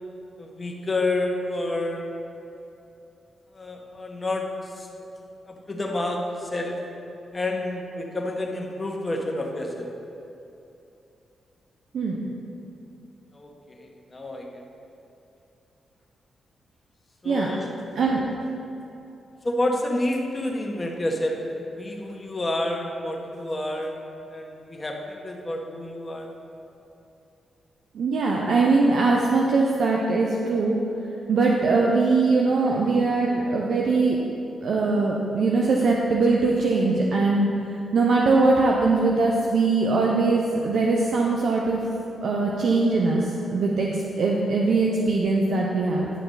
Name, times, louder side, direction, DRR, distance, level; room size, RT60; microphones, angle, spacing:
voice 1, 0.4-2.1 3.5-4.9 5.5-6.8 7.3-9.9 13.3-14.6 17.2-17.8 19.4-24.0 24.3-26.3, left 1 dB, 30° left, 0 dB, 1.5 m, -29 dB
voice 2, 27.9-30.8 31.3-34.2 34.6-37.5 37.9-41.8 42.2-46.1, right 3 dB, 70° right, -2 dB, 0.7 m, -21 dB
10.5 x 5.8 x 4.1 m, 2.8 s
supercardioid pair, 45°, 0 cm